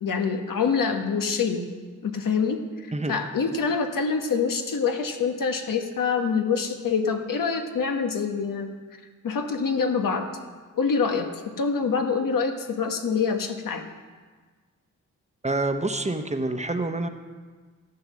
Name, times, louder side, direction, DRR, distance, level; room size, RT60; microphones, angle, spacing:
voice 1, 0.0-1.7 2.0-8.7 9.2-10.3 10.7-11.3 11.6-13.9, left 5 dB, 80° left, 5 dB, 1.3 m, -25 dB
voice 2, 15.4-17.1, right 2 dB, 20° right, 7 dB, 1.0 m, -27 dB
13.5 x 7.8 x 6.4 m, 1.5 s
cardioid pair, 70°, 32 cm